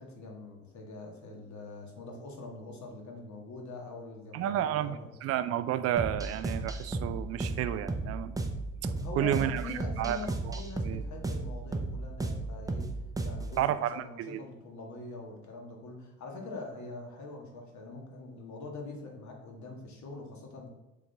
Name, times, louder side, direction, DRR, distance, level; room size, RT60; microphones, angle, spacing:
voice 1, 0.0-5.1 9.0-12.9 13.2-20.7, left 3 dB, 45° left, 1 dB, 1.7 m, -43 dB
voice 2, 4.3-8.4 9.2-10.2 10.4-11.0 13.6-14.4, right 11 dB, 40° right, 12 dB, 0.5 m, -31 dB
sound 1, 6.0-13.6, right 2 dB, 10° right, 0.7 m, -34 dB
7.1 x 4.1 x 3.4 m, 1.0 s
figure-of-eight pair, 55°, 41 cm